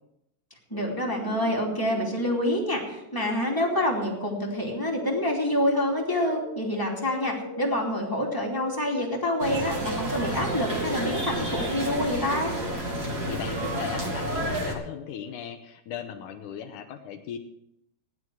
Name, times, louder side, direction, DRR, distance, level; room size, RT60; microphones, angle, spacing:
voice 1, 0.7-12.5, left 1 dB, 10° left, -3 dB, 1.6 m, -27 dB
sound 1, 0.7-15.4, left 1 dB, 65° right, 8.3 m, -40 dB
sound 2, 9.4-14.7, right 1 dB, 30° right, 1.9 m, -30 dB
voice 2, 13.0-17.4, left 9 dB, 85° left, 6 dB, 1.8 m, -38 dB
16.0 x 11.0 x 4.8 m, 0.81 s
omnidirectional pair, 4.8 m